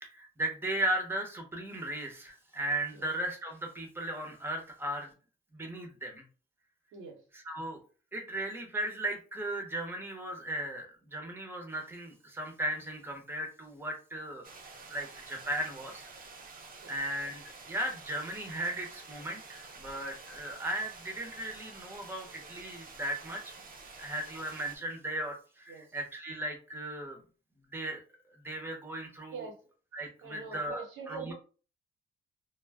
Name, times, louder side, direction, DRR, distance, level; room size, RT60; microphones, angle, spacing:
voice 1, 0.0-5.1 5.5-6.2 7.3-7.8 8.1-14.4 14.9-16.1 16.9-23.4 24.0-27.2 27.7-28.0 28.4-29.5 29.9-31.3, right 1 dB, 10° right, 2 dB, 0.8 m, -36 dB
sound 1, 14.4-24.8, right 4 dB, 45° right, 0.7 m, -49 dB
voice 2, 30.2-31.3, right 5 dB, 90° right, 1 dB, 0.9 m, -43 dB
2.2 x 2.1 x 3.4 m, 0.37 s
cardioid pair, 90°, 20 cm